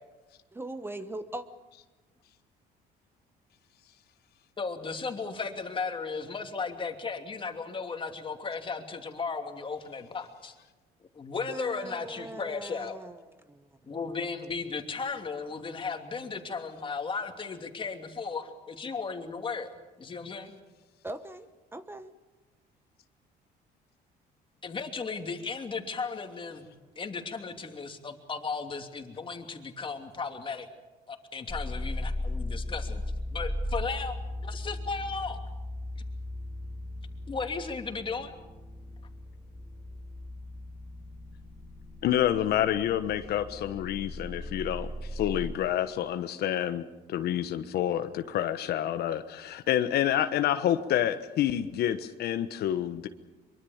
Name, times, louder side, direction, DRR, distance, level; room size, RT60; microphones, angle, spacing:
voice 1, 0.5-1.5 11.4-13.2 13.5-13.7 21.0-22.1, right 1 dB, 15° right, 11 dB, 1.1 m, -40 dB
voice 2, 4.6-10.5 11.1-13.0 13.8-19.7 20.0-20.6 24.6-26.7 27.0-30.7 31.1-33.0 33.3-34.2 34.4-35.4 37.3-38.3, left 4 dB, 30° left, 5 dB, 2.8 m, -35 dB
sound 1, 31.5-45.5, left 1 dB, 10° left, 4.5 m, -37 dB
voice 3, 42.0-46.8 47.1-53.1, left 11 dB, 70° left, 10 dB, 1.2 m, -28 dB
23.5 x 23.5 x 7.3 m, 1.2 s
cardioid pair, 110°, 17 cm